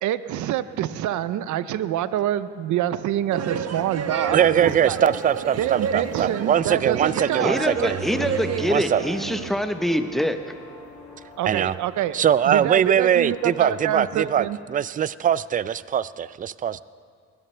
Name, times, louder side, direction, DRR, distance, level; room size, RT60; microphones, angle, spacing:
voice 1, 0.0-5.0 5.6-7.5 11.4-12.2 12.5-14.6, right 11 dB, 75° right, 14 dB, 0.6 m, -26 dB
sound 1, 3.3-9.5, right 6 dB, 55° right, 1.0 m, -30 dB
voice 2, 4.3-8.0 8.7-9.0 11.4-11.7 12.1-16.8, right 9 dB, 30° right, 18 dB, 0.4 m, -22 dB
sound 2, 4.5-14.4, left 3 dB, 85° left, 5.6 m, -45 dB
voice 3, 7.4-10.4, equal, ahead, 7 dB, 0.9 m, -25 dB
21.0 x 18.0 x 3.3 m, 2.1 s
cardioid pair, 90°, 30 cm